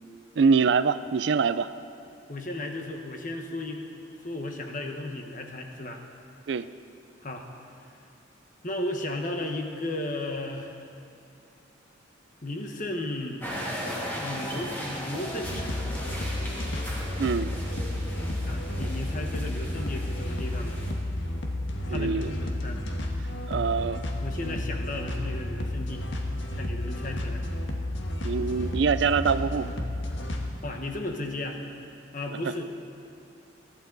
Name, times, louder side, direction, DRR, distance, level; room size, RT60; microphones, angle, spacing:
voice 1, 0.4-1.7 6.5-6.7 17.2-17.5 21.9-22.3 23.5-24.0 28.2-29.7, right 5 dB, 60° right, 14 dB, 0.4 m, -24 dB
voice 2, 2.3-3.8 4.2-6.0 7.2-7.5 8.6-10.8 12.4-13.4 14.1-15.7 18.5-20.8 21.9-22.8 24.2-26.2 26.5-27.4 30.6-31.6 32.1-32.7, left 1 dB, 40° left, 3 dB, 1.3 m, -34 dB
sound 1, 13.4-20.9, equal, 10° left, 2.4 m, -37 dB
sound 2, 15.4-30.5, left 1 dB, 75° left, 1.5 m, -32 dB
22.5 x 12.0 x 4.0 m, 2.6 s
head